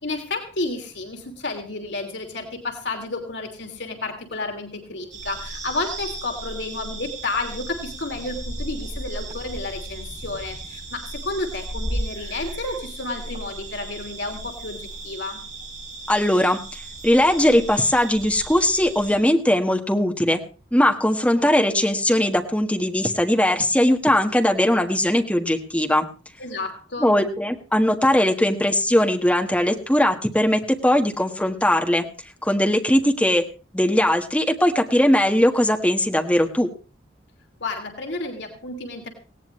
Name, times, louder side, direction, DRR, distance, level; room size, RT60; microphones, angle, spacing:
voice 1, 0.0-15.4 26.4-27.2 37.6-39.1, left 2 dB, 75° left, 3 dB, 3.0 m, -31 dB
sound 1, 5.1-19.2, right 2 dB, 40° right, 7.4 m, -35 dB
voice 2, 16.1-20.4 20.7-26.1 27.0-32.0 32.4-33.5 33.7-36.7, left 1 dB, 5° left, 3 dB, 1.5 m, -20 dB
18.5 x 17.5 x 3.2 m, 0.35 s
head